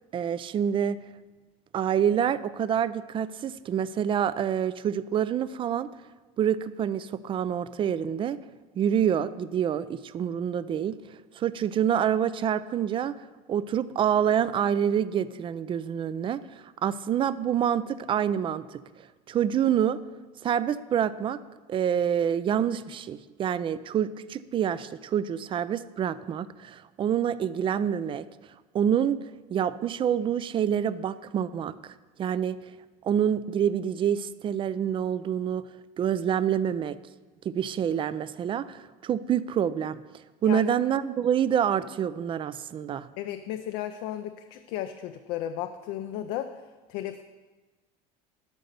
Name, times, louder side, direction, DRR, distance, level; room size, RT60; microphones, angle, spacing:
voice 1, 0.1-1.0 1.7-5.9 6.4-8.4 8.8-11.0 11.3-20.0 20.4-21.4 21.7-28.3 28.7-29.2 29.5-32.6 33.0-35.7 36.0-37.0 37.4-40.0 40.4-43.1, right 9 dB, 30° right, 16 dB, 0.4 m, -27 dB
voice 2, 43.2-46.6 46.9-47.2, left 11 dB, 65° left, 8 dB, 0.5 m, -34 dB
11.5 x 4.0 x 6.8 m, 1.3 s
supercardioid pair, 115°, 18 cm